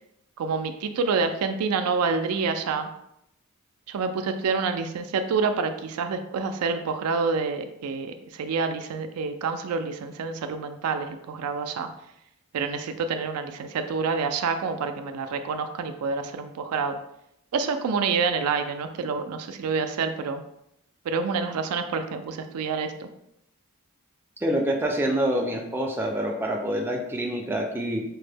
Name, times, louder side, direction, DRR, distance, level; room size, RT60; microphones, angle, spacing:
voice 1, 0.4-2.9 3.9-11.9 12.5-17.0 17.5-20.4 21.0-23.1, right 5 dB, 80° right, 8 dB, 0.4 m, -27 dB
voice 2, 24.4-28.0, right 1 dB, 10° right, 0 dB, 0.4 m, -26 dB
4.3 x 2.1 x 3.3 m, 0.79 s
head